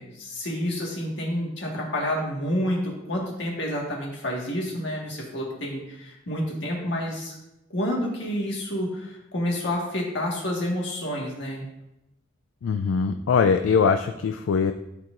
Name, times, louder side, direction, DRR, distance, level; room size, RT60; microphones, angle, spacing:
voice 1, 0.0-7.3 7.7-11.6, equal, 60° left, -2 dB, 1.7 m, -29 dB
voice 2, 12.6-14.7, left 5 dB, 80° left, 8 dB, 0.3 m, -22 dB
12.0 x 4.5 x 2.6 m, 0.90 s
head